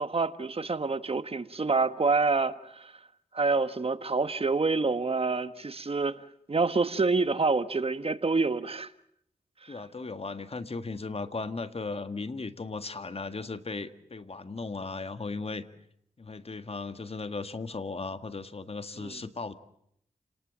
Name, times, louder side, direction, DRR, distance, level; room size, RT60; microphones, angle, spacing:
voice 1, 0.0-2.9 3.3-6.2 6.5-8.9 19.0-19.2, right 4 dB, 45° right, 1.4 m, -27 dB
voice 2, 9.7-15.6 16.2-19.5, left 3 dB, 45° left, 1.7 m, -36 dB
29.0 x 19.5 x 7.5 m
cardioid pair, 50°, 14 cm